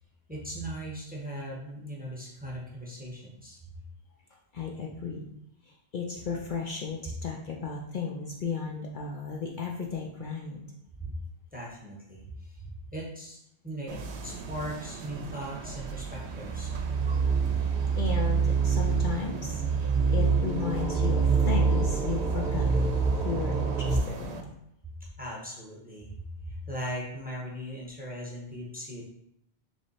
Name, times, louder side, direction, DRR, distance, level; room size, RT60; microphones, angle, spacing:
voice 1, 0.3-3.6 11.0-11.1 11.5-12.2 12.6-13.4 13.6-16.7 25.2-26.2 26.5-29.1, equal, 10° right, -3 dB, 0.7 m, -39 dB
voice 2, 4.5-5.3 5.9-10.6 17.6-24.5, left 5 dB, 60° left, -1 dB, 0.6 m, -35 dB
sound 1, 13.9-24.4, right 6 dB, 90° right, 0.8 m, -39 dB
sound 2, 15.2-24.0, right 5 dB, 50° right, 0.8 m, -26 dB
3.3 x 3.2 x 4.0 m, 0.76 s
omnidirectional pair, 1.1 m